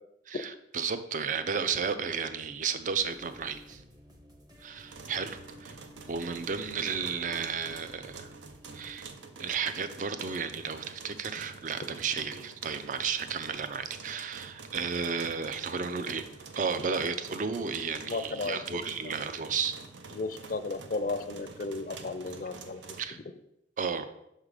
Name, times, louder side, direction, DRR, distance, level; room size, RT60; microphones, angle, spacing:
voice 1, 0.3-3.8 4.6-5.8 6.1-8.3 8.7-9.1 9.4-16.3 16.5-19.8 23.0-23.2 23.8-24.1, right 6 dB, 45° right, 10 dB, 0.4 m, -33 dB
sound 1, 2.9-9.0, equal, 20° right, 0.8 m, -54 dB
sound 2, 4.8-23.0, right 4 dB, 85° right, 0.7 m, -48 dB
voice 2, 18.0-19.2 20.1-22.8, left 3 dB, 50° left, 11 dB, 0.4 m, -34 dB
6.4 x 3.7 x 4.8 m, 0.82 s
head